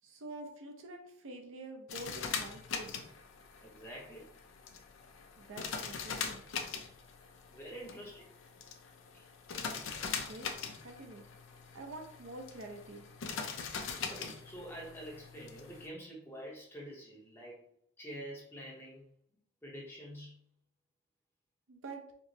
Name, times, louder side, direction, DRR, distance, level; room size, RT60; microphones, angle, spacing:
voice 1, 0.0-3.0 5.4-6.4 10.1-10.5 10.8-11.2 11.7-13.0 21.7-22.0, right 2 dB, 65° right, 3 dB, 0.5 m, -47 dB
sound 1, 1.9-15.9, left 6 dB, 65° left, 0.4 m, -42 dB
voice 2, 3.6-4.3 7.5-8.3 9.1-9.3 14.1-17.6 18.0-19.1 19.6-20.4, equal, 10° left, -3 dB, 0.7 m, -47 dB
4.4 x 2.0 x 2.7 m, 0.66 s
head